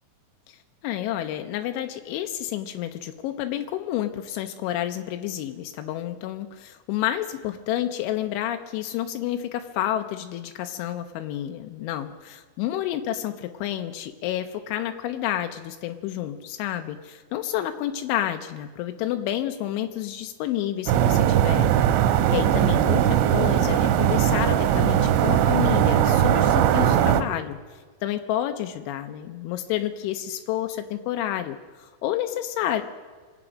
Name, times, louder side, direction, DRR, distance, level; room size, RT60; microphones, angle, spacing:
voice 1, 0.5-21.7 22.3-27.6 28.0-32.8, left 12 dB, 85° left, 6 dB, 3.1 m, -29 dB
sound 1, 20.9-27.2, right 10 dB, 85° right, 2.9 m, -20 dB
25.0 x 8.7 x 6.1 m, 1.5 s
omnidirectional pair, 5.4 m